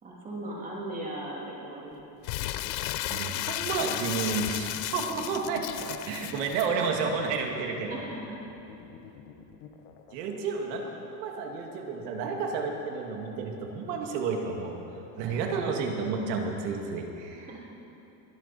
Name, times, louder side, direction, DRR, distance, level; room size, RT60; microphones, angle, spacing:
voice 1, 0.0-2.1 7.9-8.4 15.3-15.6 17.3-17.6, right 1 dB, 15° right, -4 dB, 2.6 m, -38 dB
Crumpling crinkling, 2.2-6.7, left 14 dB, 90° left, 0.7 m, -34 dB
sound 1, 2.3-17.1, left 7 dB, 60° left, 1.4 m, -50 dB
voice 2, 3.1-8.0 10.1-14.8 15.2-17.5, right 5 dB, 80° right, 2 dB, 2.3 m, -31 dB
22.5 x 11.5 x 4.3 m, 2.9 s
cardioid pair, 175°, 48 cm